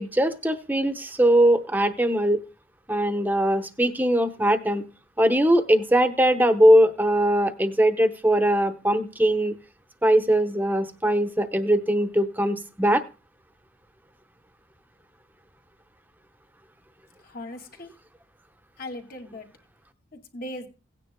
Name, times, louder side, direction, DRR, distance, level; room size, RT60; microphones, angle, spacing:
voice 1, 0.0-2.4 2.9-4.8 5.2-9.5 10.0-13.0, right 1 dB, 10° right, 8 dB, 0.9 m, -21 dB
voice 2, 17.2-17.9 18.8-19.5 20.1-20.7, left 1 dB, 55° left, 2 dB, 2.2 m, -38 dB
17.0 x 9.7 x 2.2 m, 0.31 s
head